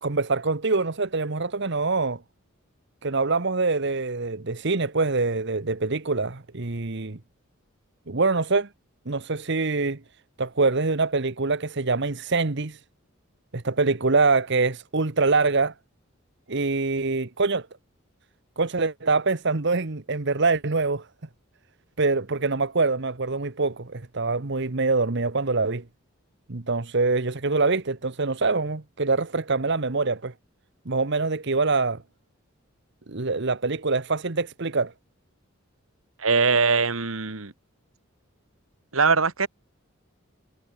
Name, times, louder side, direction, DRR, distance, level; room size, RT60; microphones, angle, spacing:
voice 1, 0.0-2.2 3.0-7.2 8.1-8.7 9.1-10.0 10.4-12.8 13.5-15.7 16.5-17.7 18.6-21.1 22.0-25.8 26.5-30.3 30.9-32.0 33.1-34.9, right 3 dB, 60° right, 1.2 m, -24 dB
voice 2, 36.2-37.5 38.9-39.5, right 4 dB, 80° right, 1.9 m, -21 dB
head